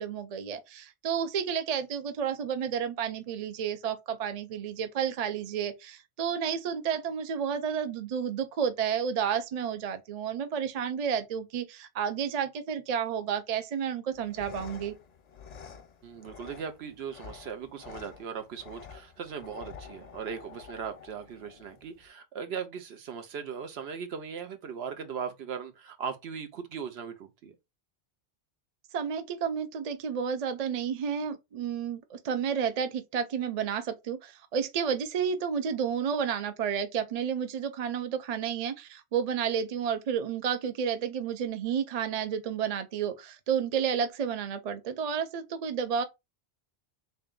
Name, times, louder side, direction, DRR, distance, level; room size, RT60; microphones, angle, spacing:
voice 1, 0.0-14.9 28.9-46.0, right 7 dB, 50° right, 0.5 m, -31 dB
sound 1, 14.1-22.1, left 7 dB, 50° left, 0.5 m, -49 dB
voice 2, 16.0-27.6, right 6 dB, 80° right, 0.9 m, -38 dB
3.3 x 2.6 x 3.7 m
omnidirectional pair, 1.1 m